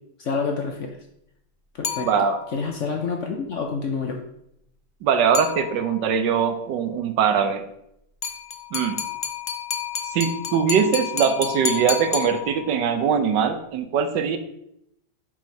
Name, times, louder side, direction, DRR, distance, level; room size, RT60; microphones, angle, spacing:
voice 1, 0.2-0.9 1.7-2.1 2.5-4.2, left 5 dB, 60° left, 2 dB, 0.8 m, -27 dB
sound 1, 1.8-2.6 5.3-6.1 8.2-12.9, left 8 dB, 85° left, 0.4 m, -30 dB
voice 2, 2.0-2.4 5.0-7.6 8.7-9.0 10.1-14.4, right 7 dB, 80° right, 9 dB, 1.3 m, -22 dB
6.3 x 4.3 x 4.5 m, 0.77 s
omnidirectional pair, 1.9 m